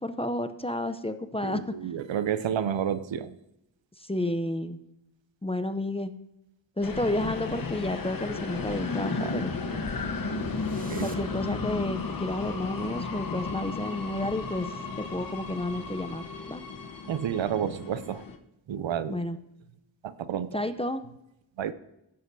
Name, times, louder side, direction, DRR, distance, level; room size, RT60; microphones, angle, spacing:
voice 1, 0.0-1.6 4.0-4.8 5.4-6.1 6.8-9.5 11.0-14.7 15.0-16.6 19.1-19.4 20.5-21.0, left 1 dB, 15° left, 10 dB, 0.6 m, -31 dB
voice 2, 1.4-3.4 9.2-9.3 10.9-11.1 17.1-18.3 18.7-19.2 20.0-20.6 21.6-21.7, right 9 dB, 70° right, 14 dB, 0.6 m, -30 dB
sound 1, 6.8-18.4, left 4 dB, 45° left, 1.0 m, -34 dB
sound 2, 8.3-13.8, right 2 dB, 20° right, 0.9 m, -46 dB
16.0 x 7.3 x 2.7 m, 0.85 s
cardioid pair, 55°, 47 cm